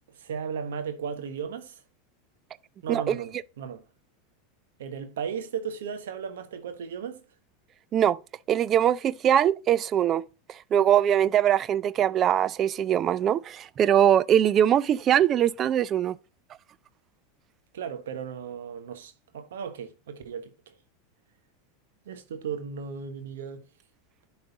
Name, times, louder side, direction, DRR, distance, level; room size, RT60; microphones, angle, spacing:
voice 1, 0.1-1.8 2.8-3.8 4.8-7.2 17.7-20.7 22.0-23.6, right 7 dB, 80° right, 1.3 m, -36 dB
voice 2, 8.5-10.2 10.7-16.2, right 10 dB, 35° right, 0.4 m, -22 dB
11.0 x 4.0 x 4.0 m
hypercardioid pair, 105°, 0 cm